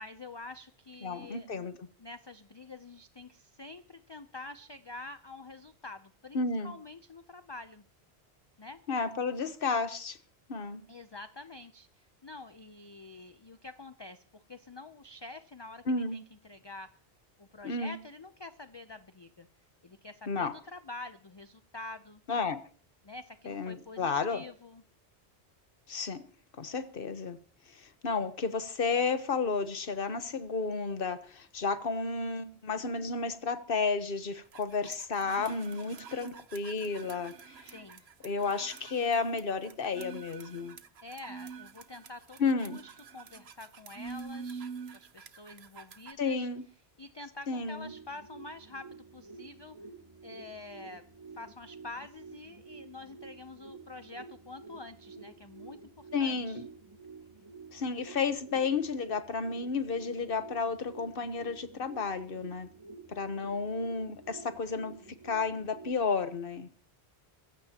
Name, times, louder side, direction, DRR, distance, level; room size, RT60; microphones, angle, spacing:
voice 1, 0.0-1.7 2.0-7.8 8.6-8.8 10.9-16.9 17.4-19.5 19.8-22.2 23.0-24.8 37.7-38.0 41.0-44.7 44.9-46.5 47.0-49.8 50.2-51.0 51.3-56.6, left 2 dB, 30° left, 0.6 m, -47 dB
voice 2, 1.0-1.7 6.3-6.7 8.9-10.2 10.5-10.8 15.9-16.2 17.6-18.0 20.3-20.5 22.3-22.6 23.4-24.4 25.9-26.2 26.6-27.4 27.7-37.7 38.2-40.8 42.4-42.8 46.2-46.6 47.5-47.9 56.1-56.7 57.7-62.7 63.1-64.9 65.2-66.8, left 4 dB, 60° left, 1.4 m, -32 dB
sound 1, 34.5-46.1, right 5 dB, 75° right, 1.2 m, -46 dB
sound 2, 47.5-65.9, right 4 dB, 25° right, 1.5 m, -50 dB
24.5 x 15.5 x 2.9 m
omnidirectional pair, 1.1 m